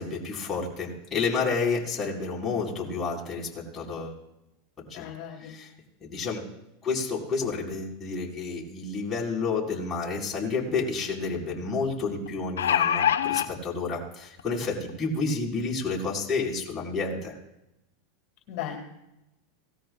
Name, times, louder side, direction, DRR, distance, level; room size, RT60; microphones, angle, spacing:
voice 1, 0.0-4.2 4.8-5.0 5.4-5.7 6.0-6.4 6.8-17.3, left 4 dB, 25° left, -3 dB, 4.7 m, -30 dB
voice 2, 4.9-5.6 18.5-18.8, left 10 dB, 55° left, 2 dB, 2.3 m, -36 dB
sound 1, 10.1-10.2 10.6-10.7 12.3-13.5 14.4-14.5 14.9-15.0, left 9 dB, 90° left, 0.7 m, -24 dB
18.5 x 13.5 x 2.4 m, 0.88 s
hypercardioid pair, 105°, 0 cm